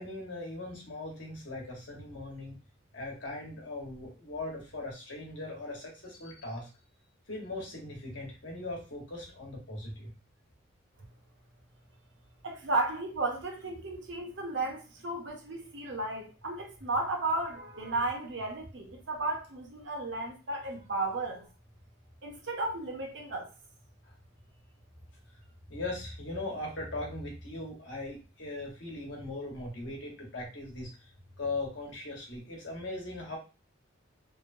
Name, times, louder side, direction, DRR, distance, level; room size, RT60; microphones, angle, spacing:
voice 1, 0.0-2.6 2.9-6.7 7.3-10.1 25.7-30.9 31.4-33.4, left 2 dB, 60° left, 1.1 m, -39 dB
voice 2, 12.4-21.5 22.2-23.5, right 2 dB, 60° right, 0.7 m, -34 dB
3.0 x 2.1 x 2.6 m
head